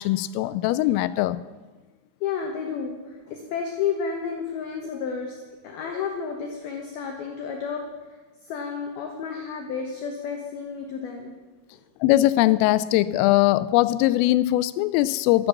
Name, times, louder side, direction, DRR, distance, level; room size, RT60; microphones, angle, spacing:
voice 1, 0.0-1.4 12.0-15.5, left 16 dB, 85° left, 15 dB, 3.1 m, -21 dB
voice 2, 2.2-5.4 5.6-7.8 8.5-11.3 11.7-11.8, left 6 dB, 70° left, 2 dB, 2.5 m, -31 dB
13.0 x 10.5 x 7.2 m, 1.3 s
omnidirectional pair, 5.7 m